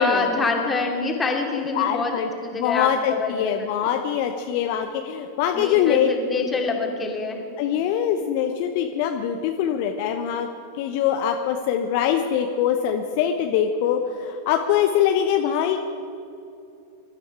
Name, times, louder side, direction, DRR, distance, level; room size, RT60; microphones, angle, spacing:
voice 1, 0.0-3.9 5.5-7.4, left 3 dB, 15° left, 1 dB, 2.7 m, -26 dB
voice 2, 1.7-6.1 7.6-10.5 10.8-15.8, left 9 dB, 45° left, 5 dB, 0.9 m, -23 dB
23.0 x 12.5 x 4.8 m, 2.7 s
figure-of-eight pair, 90°, 0 cm